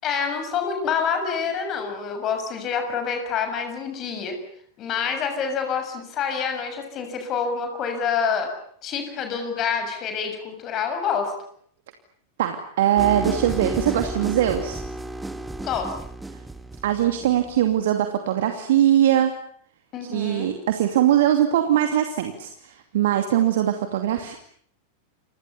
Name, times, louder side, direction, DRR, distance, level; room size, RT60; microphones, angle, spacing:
voice 1, 0.0-4.4 4.8-8.5 8.8-11.3 15.6-15.9 19.9-20.5, left 6 dB, 35° left, 6 dB, 6.9 m, -27 dB
voice 2, 12.4-14.8 16.8-19.3 20.1-24.3, right 11 dB, 55° right, 6 dB, 2.6 m, -21 dB
sound 1, 13.0-17.7, right 2 dB, 5° right, 1.9 m, -32 dB
30.0 x 26.0 x 7.1 m, 0.64 s
figure-of-eight pair, 90°, 0 cm